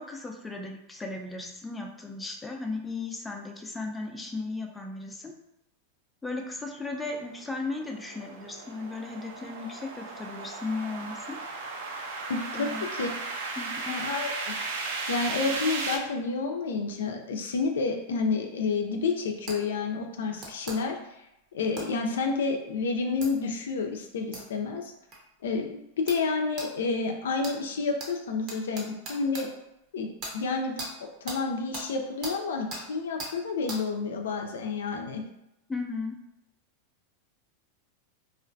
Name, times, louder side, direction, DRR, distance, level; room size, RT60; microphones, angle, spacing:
voice 1, 0.0-5.3 6.2-11.4 12.5-12.9 13.6-14.0 35.7-36.2, left 3 dB, 10° left, 1 dB, 0.4 m, -36 dB
sound 1, 6.9-16.0, right 3 dB, 75° right, 0.4 m, -36 dB
voice 2, 12.3-13.1 13.9-14.5 15.1-21.2 21.5-24.9 25.4-25.8 26.1-29.5 29.9-30.1 30.3-30.7 31.0-35.2, left 4 dB, 80° left, 3 dB, 0.4 m, -30 dB
sound 2, 19.5-19.6 20.4-20.8 21.8-21.9 23.2-23.3 24.3-24.4 25.1-25.2 26.1-26.2 26.6-26.7 27.4-27.6 28.0-28.1 28.5-29.4 30.2-30.3 30.8-30.9 31.3-31.4 31.7-31.9 32.2-32.4 32.7-32.8 33.2-33.3 33.7-33.8, right 2 dB, 40° right, 0.8 m, -38 dB
2.4 x 2.2 x 2.5 m, 0.86 s
hypercardioid pair, 110°, 0 cm